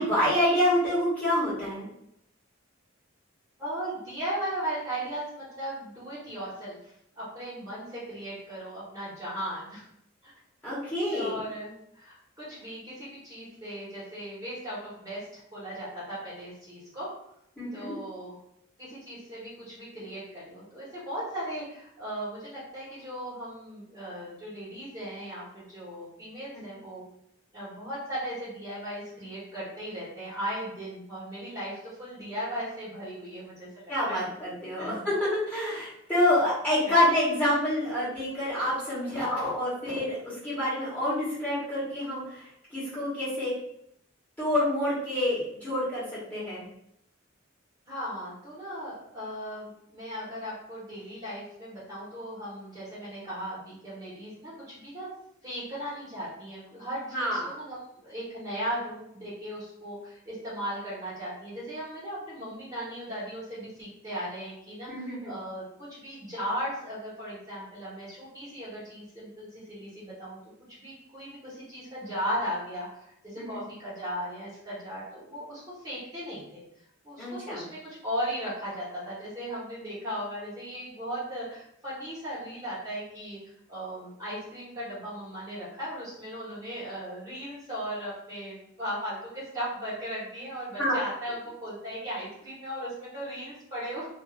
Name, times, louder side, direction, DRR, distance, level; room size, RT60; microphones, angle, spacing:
voice 1, 0.0-1.9 10.6-11.4 17.6-17.9 33.9-42.4 42.7-43.5 44.4-46.0 46.3-46.7 57.1-57.5 64.9-65.3 73.4-73.6 77.2-77.6 90.8-90.9, left 1 dB, 10° left, -11 dB, 1.2 m, -27 dB
voice 2, 3.6-9.8 10.2-10.3 11.0-17.1 17.7-18.4 18.8-27.0 27.5-34.2 34.8-34.9 36.8-37.1 47.9-55.1 55.4-65.6 65.9-70.4 70.8-76.6 77.0-94.1, equal, 20° right, -10 dB, 1.1 m, -37 dB
2.6 x 2.5 x 2.4 m, 0.74 s
head